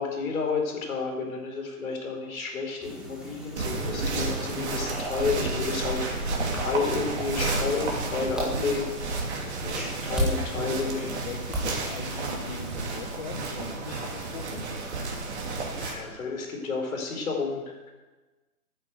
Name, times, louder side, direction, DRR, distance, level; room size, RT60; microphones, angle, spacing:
voice 1, 0.0-9.0 10.0-11.1 13.9-14.0 15.8-17.9, left 4 dB, 65° left, 1 dB, 4.4 m, -31 dB
sound 1, 2.8-11.7, right 1 dB, ahead, 1.7 m, -36 dB
sound 2, 3.6-15.9, right 3 dB, 45° right, 3.0 m, -31 dB
voice 2, 9.6-9.9 10.1-14.6, left 6 dB, 35° left, 3 dB, 1.1 m, -41 dB
9.5 x 9.4 x 8.0 m, 1.2 s
hypercardioid pair, 150°, 45 cm